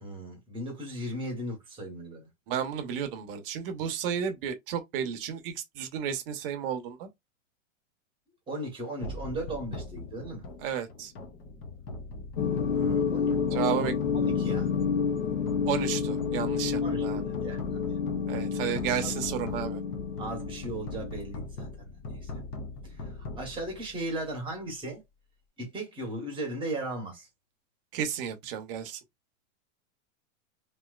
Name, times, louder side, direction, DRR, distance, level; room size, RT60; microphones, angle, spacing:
voice 1, 0.0-2.3 8.5-10.4 12.7-13.9 14.1-14.7 16.8-17.9 19.0-19.2 20.2-22.3 22.8-23.1 23.4-25.0 25.6-27.3, right 1 dB, 10° right, 1.1 m, -37 dB
voice 2, 2.5-7.1 10.6-11.1 13.5-13.9 15.7-17.2 18.3-19.8 27.9-29.0, right 8 dB, 45° right, 0.9 m, -32 dB
sound 1, 9.0-24.3, left 2 dB, 20° left, 0.4 m, -41 dB
sound 2, 12.4-21.2, left 6 dB, 70° left, 0.7 m, -29 dB
3.0 x 2.8 x 2.3 m
supercardioid pair, 150°, 40 cm